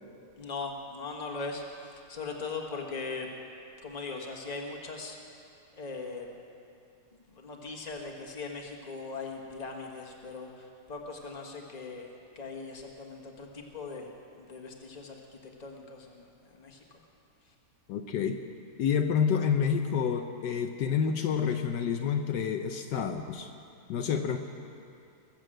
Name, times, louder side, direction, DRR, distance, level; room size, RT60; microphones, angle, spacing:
voice 1, 0.4-3.3 3.8-5.2 5.8-6.3 7.3-12.1 12.3-14.1 14.4-16.8, left 4 dB, 25° left, 0 dB, 1.4 m, -40 dB
voice 2, 17.9-18.4 18.8-23.5 23.9-24.4, left 7 dB, 75° left, 6 dB, 1.3 m, -28 dB
20.5 x 7.3 x 7.7 m, 2.5 s
omnidirectional pair, 1.9 m